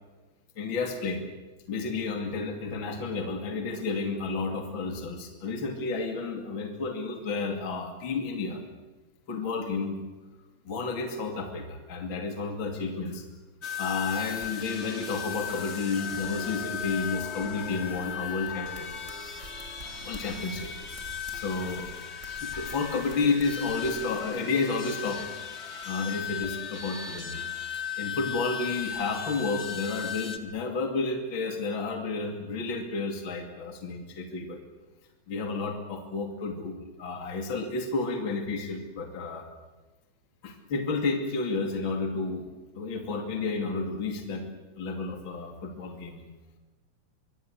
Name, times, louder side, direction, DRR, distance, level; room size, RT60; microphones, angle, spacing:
voice 1, 0.6-1.2 1.7-8.6 9.3-10.0 10.7-13.2 13.8-18.9 20.0-21.1 21.3-21.9 22.4-25.2 25.8-27.4 27.7-34.6 35.3-39.5 40.4-46.3, left 4 dB, 40° left, 5 dB, 3.1 m, -31 dB
sound 1, 13.6-30.4, left 8 dB, 25° left, 1.8 m, -36 dB
sound 2, 16.1-24.2, right 2 dB, 25° right, 3.7 m, -49 dB
25.0 x 23.5 x 8.0 m, 1.2 s
omnidirectional pair, 3.5 m